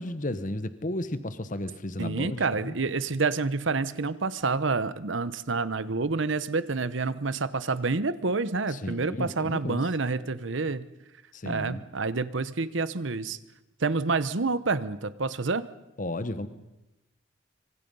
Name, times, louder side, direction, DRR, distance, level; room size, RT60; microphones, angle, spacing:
voice 1, 0.0-2.7 8.8-9.8 11.4-11.8 16.0-16.5, left 1 dB, 40° left, 12 dB, 1.2 m, -33 dB
voice 2, 2.0-10.8 11.4-13.4 13.8-15.6, right 3 dB, 70° right, 14 dB, 1.0 m, -28 dB
26.5 x 25.0 x 5.5 m, 0.96 s
head